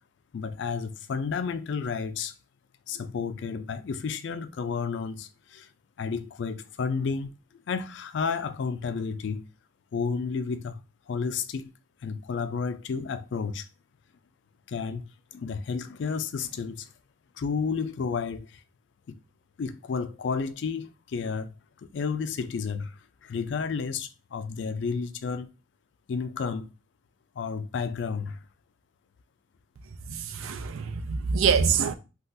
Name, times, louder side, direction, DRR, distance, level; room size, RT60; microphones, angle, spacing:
voice 1, 0.3-2.3 2.9-5.7 6.0-7.3 7.7-9.4 9.9-10.8 11.1-11.7 12.0-13.7 14.7-16.9 17.4-18.6 19.1-19.2 19.6-25.5 26.1-26.7 27.4-28.4, left 5 dB, 60° left, 0.3 m, -31 dB
voice 2, 30.1-31.9, right 6 dB, 85° right, 0.4 m, -25 dB
3.6 x 2.3 x 2.6 m
head